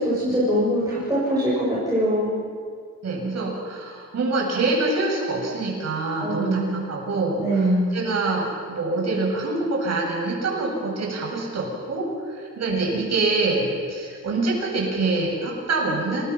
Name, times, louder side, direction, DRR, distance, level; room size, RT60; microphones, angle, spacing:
voice 1, 0.0-2.4 6.2-6.8 7.4-7.9, right 1 dB, 15° right, -9 dB, 7.7 m, -22 dB
voice 2, 3.0-7.6 7.9-16.3, right 3 dB, 60° right, -2 dB, 7.8 m, -25 dB
29.5 x 21.0 x 5.8 m, 2.1 s
wide cardioid pair, 150°, 30 cm